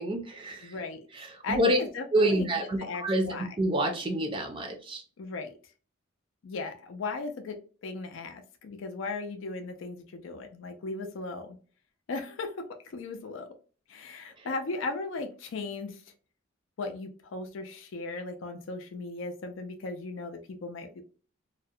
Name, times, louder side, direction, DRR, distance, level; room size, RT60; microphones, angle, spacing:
voice 1, 0.0-0.7 1.2-1.8 2.1-3.3 3.6-5.0, right 1 dB, 25° right, 4 dB, 0.4 m, -27 dB
voice 2, 0.6-1.0 1.4-3.6 5.2-5.5 6.4-7.6 7.8-11.6 12.1-13.5 13.9-16.0 16.8-21.0, left 3 dB, 70° left, 6 dB, 0.4 m, -37 dB
2.4 x 2.1 x 2.7 m, 0.39 s
head